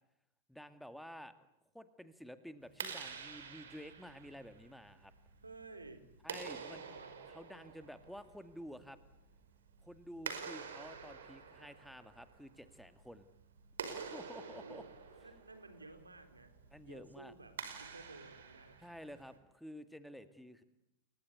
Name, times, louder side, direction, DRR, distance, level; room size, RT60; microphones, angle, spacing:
voice 1, 0.5-1.3 1.7-5.1 6.2-6.8 7.3-9.0 9.8-13.2 13.8-14.8 16.7-17.3 18.8-20.6, equal, ahead, 11 dB, 2.0 m, -51 dB
Clapping, 2.6-19.4, right 6 dB, 65° right, 5.4 m, -49 dB
voice 2, 5.4-6.0 6.5-7.1 14.4-14.9 15.2-17.5 17.8-18.8, right 3 dB, 80° right, 8 dB, 4.0 m, -54 dB
30.0 x 22.5 x 8.3 m, 0.84 s
figure-of-eight pair, 90°, 0 cm